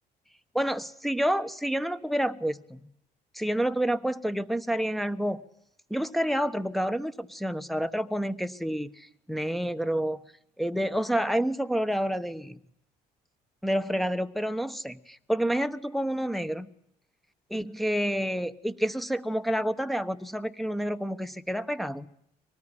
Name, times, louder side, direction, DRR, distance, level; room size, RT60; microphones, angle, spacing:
voice 1, 0.5-2.8 3.3-5.4 5.9-10.2 10.6-12.6 13.6-16.7 17.5-22.1, equal, ahead, 1.2 m, -29 dB
24.5 x 19.0 x 10.0 m
cardioid pair, 110°, 17 cm